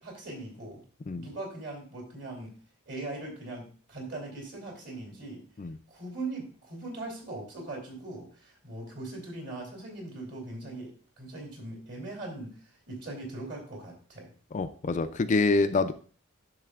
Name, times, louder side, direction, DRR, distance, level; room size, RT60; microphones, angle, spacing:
voice 1, 0.0-0.8 1.1-2.5 2.9-5.4 5.9-14.3, right 2 dB, 55° right, -1 dB, 2.8 m, -40 dB
voice 2, 14.5-15.9, left 3 dB, 35° left, 10 dB, 0.4 m, -26 dB
11.0 x 6.5 x 2.4 m, 0.42 s
head